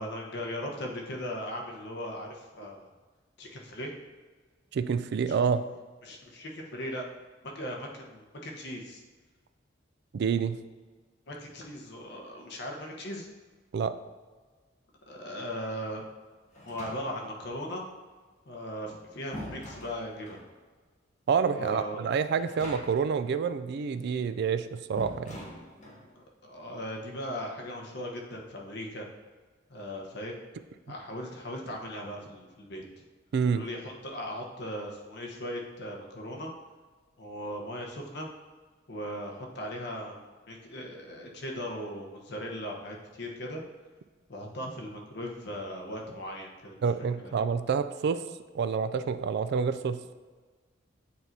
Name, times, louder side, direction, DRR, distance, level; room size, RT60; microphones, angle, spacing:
voice 1, 0.0-2.9 3.4-3.9 5.3-5.4 6.0-7.0 7.4-9.0 11.3-13.3 15.1-16.0 16.7-17.8 18.4-20.4 21.5-22.1 26.1-29.1 29.7-30.3 30.9-33.0 33.5-36.5 37.2-38.3 38.9-43.6 44.3-47.3, equal, 60° left, 0 dB, 1.0 m, -38 dB
voice 2, 4.7-5.6 10.1-10.6 13.7-13.9 21.3-25.4 33.3-33.6 46.8-48.2 48.5-50.0, right 6 dB, 60° right, 12 dB, 0.3 m, -28 dB
sound 1, 16.5-17.4 18.7-20.5 22.3-23.2 23.4-23.5 25.0-26.1, left 1 dB, 40° left, 1.4 m, -44 dB
8.5 x 4.4 x 2.7 m, 1.4 s
head